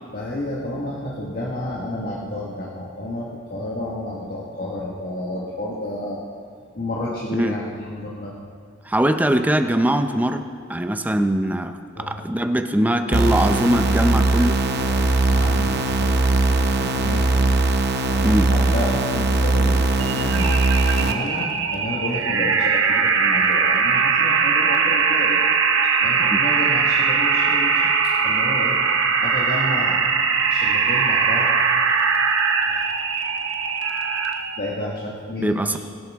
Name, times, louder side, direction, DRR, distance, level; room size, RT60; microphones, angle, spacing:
voice 1, 0.1-6.2 6.7-8.3 11.9-12.2 14.8-17.5 18.1-20.5 20.9-25.4 26.0-28.8 29.2-30.0 30.5-31.6 32.7-32.9 34.6-35.8, left 1 dB, 50° left, -4 dB, 1.5 m, -31 dB
voice 2, 8.8-10.4 10.7-14.6 18.2-18.5 26.3-26.4 35.4-35.8, right 1 dB, 10° right, 7 dB, 0.5 m, -21 dB
sound 1, 13.1-21.1, right 2 dB, 55° right, 0.8 m, -20 dB
sound 2, 20.0-34.6, right 5 dB, 80° right, 0.9 m, -20 dB
23.0 x 7.8 x 3.5 m, 2.2 s
head